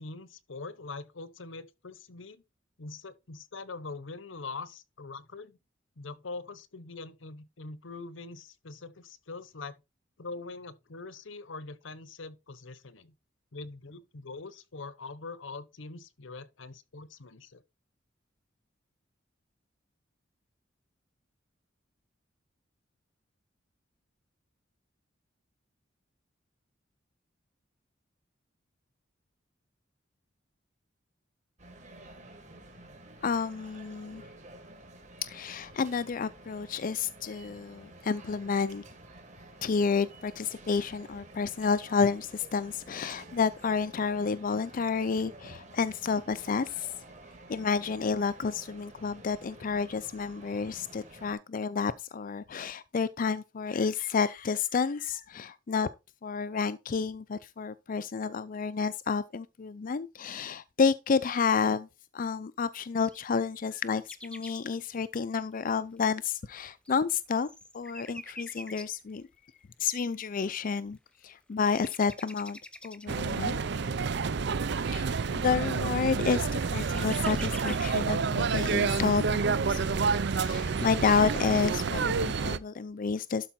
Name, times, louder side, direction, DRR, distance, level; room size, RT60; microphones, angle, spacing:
voice 1, 0.0-2.4 2.8-5.6 6.0-9.8 10.2-13.1 13.5-17.6, left 3 dB, 75° left, 0.9 m, -43 dB
sound 1, 31.6-51.3, right 2 dB, 40° right, 2.5 m, -51 dB
voice 2, 33.2-34.2 35.3-38.8 39.6-46.9 47.5-55.9 56.2-61.9 62.1-67.5 67.7-69.3 69.8-71.0 71.2-73.6 74.8-83.5, left 5 dB, 45° left, 0.4 m, -30 dB
sound 2, 63.1-64.6 66.0-66.1 66.6-69.1 70.1-70.2 70.4-71.1 71.5-73.3 73.9-74.0 74.6-77.9 79.1-79.2 79.7-79.8 80.2-81.4, left 1 dB, 5° left, 0.8 m, -47 dB
sound 3, 73.1-82.6, right 5 dB, 60° right, 0.6 m, -29 dB
12.0 x 4.8 x 4.3 m
head